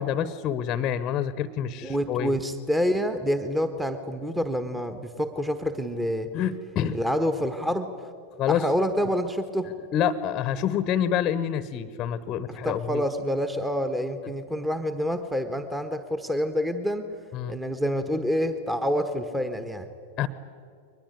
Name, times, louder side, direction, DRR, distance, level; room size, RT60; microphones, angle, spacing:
voice 1, 0.0-2.3 6.3-7.0 8.4-8.6 9.9-13.0 17.3-17.6 20.2-20.3, left 9 dB, 30° left, 15 dB, 1.0 m, -27 dB
voice 2, 1.8-6.3 6.9-7.9 8.5-9.7 12.5-17.1 17.5-19.9, equal, 5° right, 9 dB, 1.4 m, -27 dB
22.5 x 20.5 x 9.8 m, 2.4 s
figure-of-eight pair, 90°, 0 cm